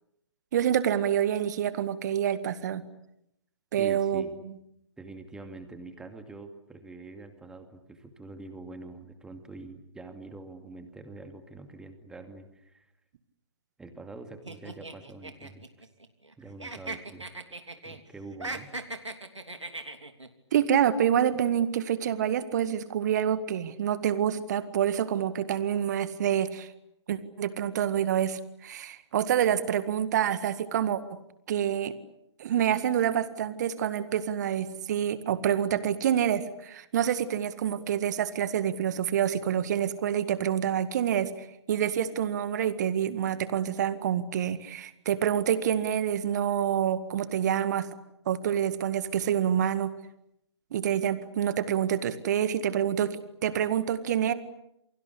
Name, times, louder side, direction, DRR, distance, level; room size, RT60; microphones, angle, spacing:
voice 1, 0.5-2.8 3.7-4.2 20.5-26.7 27.1-31.0 31.5-31.9 32.4-41.3 41.7-47.9 48.3-49.9 50.7-53.1 53.4-54.3, right 9 dB, 35° right, 13 dB, 1.9 m, -27 dB
voice 2, 3.8-4.4 5.0-12.9 13.8-15.9 16.4-17.3 17.8-18.7, right 3 dB, 5° right, 7 dB, 2.4 m, -45 dB
sound 1, 14.5-16.3 16.6-18.0 18.3-20.3, right 2 dB, 80° right, 3.2 m, -39 dB
29.0 x 23.5 x 8.4 m, 0.81 s
figure-of-eight pair, 135°, 15 cm